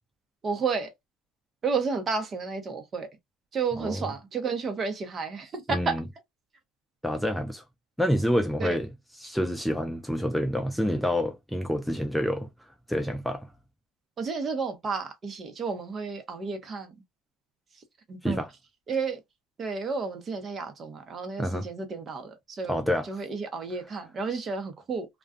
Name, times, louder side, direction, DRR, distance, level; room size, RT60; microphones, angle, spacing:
voice 1, 0.4-0.9 1.6-3.1 3.5-6.0 8.6-8.8 14.2-16.9 18.1-18.4 18.9-19.2 19.6-25.1, right 5 dB, 40° right, 0.8 m, -31 dB
voice 2, 5.7-6.0 7.0-7.6 8.0-8.9 9.2-12.5 12.9-13.5 18.2-18.5 21.4-21.7 22.7-23.2, equal, ahead, 0.4 m, -28 dB
2.3 x 2.3 x 2.5 m
hypercardioid pair, 75°, 0 cm